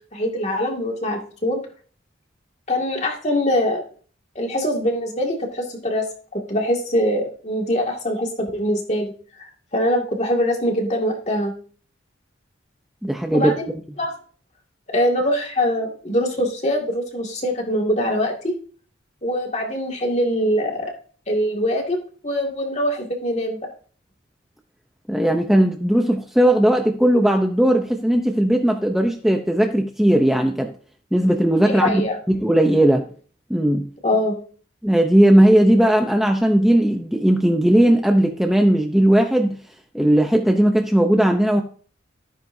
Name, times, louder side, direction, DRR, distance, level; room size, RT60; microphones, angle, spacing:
voice 1, 0.1-1.6 2.7-3.8 4.4-6.1 6.3-11.5 13.3-13.7 14.0-14.1 14.9-18.5 19.2-20.9 21.3-23.6 31.6-32.2 34.0-34.4, equal, 35° left, 1 dB, 2.2 m, -23 dB
voice 2, 13.0-13.5 25.1-30.7 31.1-32.0 32.3-33.1 33.5-33.8 34.8-39.6 39.9-41.6, right 1 dB, ahead, 3 dB, 0.7 m, -17 dB
13.5 x 9.4 x 2.7 m, 0.43 s
head